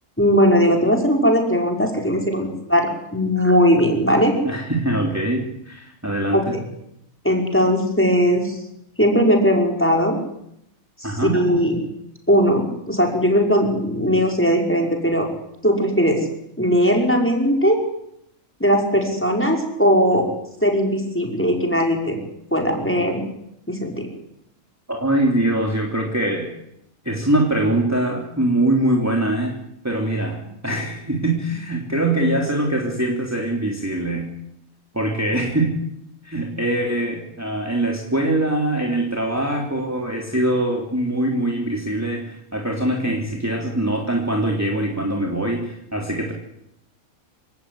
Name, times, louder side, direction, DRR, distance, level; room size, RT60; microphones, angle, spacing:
voice 1, 0.2-4.3 6.3-6.6 7.2-8.6 9.0-10.2 11.3-11.8 12.3-15.3 15.6-16.2 16.6-17.8 18.6-20.3 20.6-22.2 22.5-23.2 23.7-24.1, equal, 10° left, 1 dB, 5.3 m, -19 dB
voice 2, 4.5-6.6 11.0-11.4 24.9-26.5 27.1-29.6 29.8-34.3 34.9-35.8 36.2-46.3, right 1 dB, 10° right, 0 dB, 3.5 m, -23 dB
27.5 x 17.0 x 9.8 m, 0.77 s
omnidirectional pair, 1.5 m